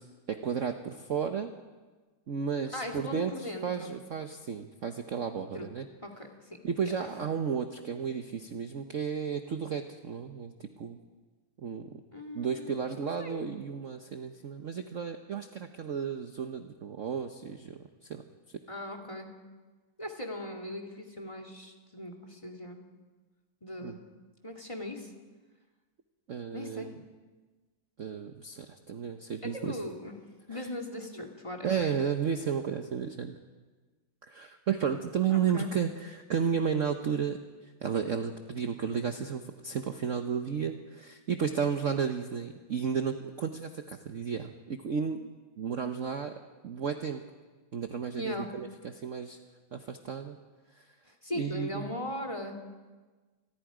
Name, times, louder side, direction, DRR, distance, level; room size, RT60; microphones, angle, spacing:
voice 1, 0.3-1.5 2.3-5.9 6.6-11.0 11.6-11.9 12.3-18.2 23.8-24.0 26.3-26.9 28.0-29.8 30.5-30.7 31.6-33.4 34.2-46.3 46.6-47.2 47.7-49.4 49.7-50.4 50.7-50.9 51.3-51.9, right 7 dB, 50° right, 6 dB, 1.1 m, -33 dB
voice 2, 2.7-4.0 5.5-5.7 6.0-6.9 12.1-12.8 13.2-13.4 18.7-19.3 20.0-22.8 23.6-24.0 24.4-25.1 26.5-27.0 29.4-30.2 30.5-31.9 35.3-35.7 48.2-48.5 51.0-52.6, left 1 dB, 15° left, 5 dB, 2.2 m, -39 dB
28.0 x 21.0 x 5.0 m, 1.3 s
omnidirectional pair, 2.2 m